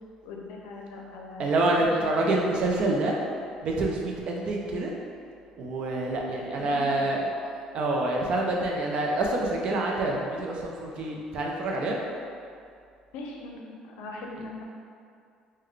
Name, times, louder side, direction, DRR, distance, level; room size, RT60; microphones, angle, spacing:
voice 1, 0.2-2.0 6.6-7.2 13.1-14.6, left 3 dB, 85° left, -1 dB, 0.5 m, -40 dB
voice 2, 1.4-3.1 3.6-4.9 5.6-7.2 7.7-12.0, right 2 dB, 55° right, -1 dB, 0.5 m, -27 dB
3.7 x 2.2 x 3.2 m, 2.4 s
cardioid pair, 105°, 2 cm